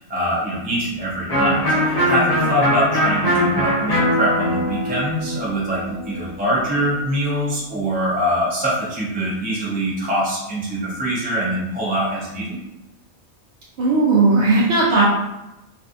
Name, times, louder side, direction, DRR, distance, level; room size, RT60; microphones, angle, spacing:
voice 1, 0.1-12.6, equal, 10° right, -6 dB, 0.4 m, -23 dB
Electric guitar, 1.3-6.9, equal, 40° left, 0.7 m, -21 dB
voice 2, 13.8-15.0, right 3 dB, 70° right, -6 dB, 0.8 m, -16 dB
2.5 x 2.5 x 2.4 m, 0.93 s
omnidirectional pair, 1.2 m